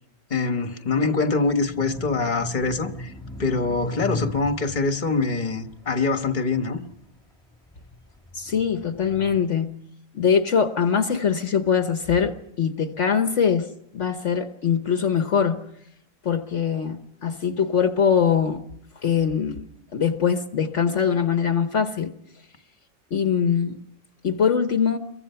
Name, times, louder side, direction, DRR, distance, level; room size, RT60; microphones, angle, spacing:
voice 1, 0.3-3.1 3.4-6.8, left 4 dB, 35° left, 1.6 m, -24 dB
sound 1, 1.4-7.0 7.5-9.4, left 1 dB, 5° left, 2.4 m, -37 dB
voice 2, 8.3-9.8 10.1-15.6 16.2-18.6 19.0-19.6 19.9-22.1 23.1-23.8 24.2-25.0, left 7 dB, 65° left, 1.4 m, -22 dB
29.0 x 23.5 x 5.7 m
omnidirectional pair, 1.4 m